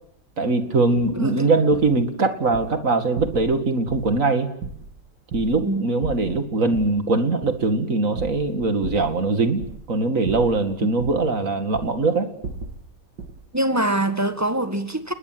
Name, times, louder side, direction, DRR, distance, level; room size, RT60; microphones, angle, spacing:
voice 1, 0.4-4.5 5.3-12.3, right 3 dB, 50° right, 2.6 m, -21 dB
sound 1, 1.0-1.2 1.7-2.0 2.4-2.7 3.2-3.6 3.9-4.2 4.6-5.7 6.0-7.0 7.4-7.7 8.2-9.2 9.5-10.0 10.2-11.3 11.7-12.0 12.4-12.9 13.2-13.5, right 4 dB, 85° right, 2.3 m, -35 dB
voice 2, 1.1-1.5 5.6-5.9 13.5-15.1, right 1 dB, 10° right, 1.6 m, -24 dB
30.0 x 21.0 x 7.8 m
omnidirectional pair, 1.8 m